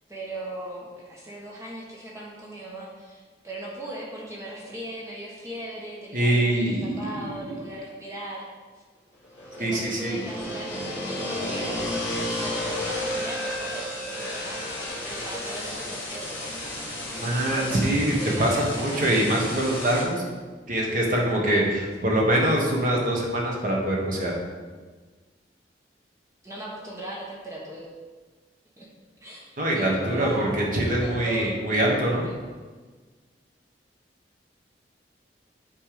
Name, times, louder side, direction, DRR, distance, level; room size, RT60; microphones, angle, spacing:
voice 1, 0.1-8.5 9.6-11.8 12.1-14.7 14.9-16.4 17.5-17.8 18.2-19.1 26.4-28.0 28.8-28.9 29.2-31.5 32.1-32.4, right 1 dB, 20° right, -4 dB, 1.0 m, -38 dB
voice 2, 6.1-7.3 9.6-10.2 17.1-20.2 20.7-24.3 29.6-32.3, right 1 dB, 50° right, -1 dB, 1.4 m, -24 dB
sound 1, 9.2-20.0, left 1 dB, 15° left, 2.3 m, -32 dB
9.0 x 3.4 x 5.0 m, 1.4 s
head